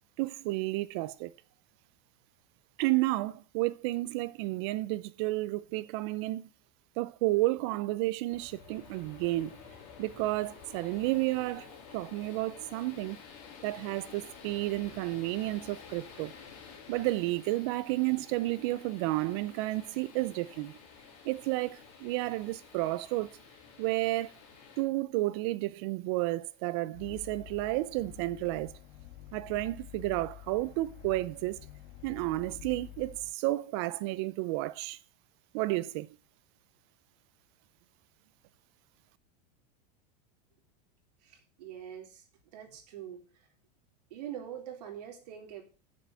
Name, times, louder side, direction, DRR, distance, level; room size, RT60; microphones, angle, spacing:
voice 1, 0.2-1.3 2.8-6.5 7.0-9.6 10.0-11.7 11.9-13.2 13.6-16.3 16.9-20.8 21.2-23.4 23.8-24.3 24.8-28.8 29.3-31.7 32.0-35.0 35.5-36.1, right 19 dB, 40° right, 0.5 m, -31 dB
sound 1, 8.3-24.8, left 6 dB, 50° left, 3.3 m, -51 dB
sound 2, 26.9-33.3, left 14 dB, 75° left, 1.5 m, -49 dB
voice 2, 41.2-42.2 42.5-43.5 44.1-45.6, right 10 dB, 75° right, 3.2 m, -44 dB
7.6 x 6.8 x 7.5 m
supercardioid pair, 175°, 21 cm